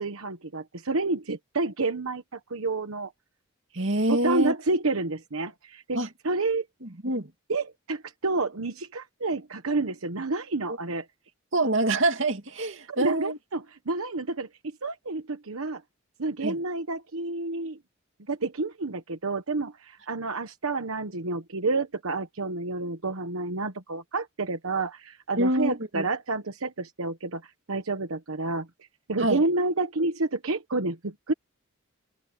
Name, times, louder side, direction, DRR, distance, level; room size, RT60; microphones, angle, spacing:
voice 1, 0.0-3.1 4.1-6.6 7.5-11.1 12.9-15.8 16.2-17.8 18.3-28.7 29.1-31.3, right 3 dB, 85° right, 1.2 m, -29 dB
voice 2, 3.7-4.5 5.9-6.1 6.8-7.3 11.5-13.4 16.4-16.6 25.4-26.0 29.2-29.4, right 1 dB, 60° right, 2.6 m, -26 dB
head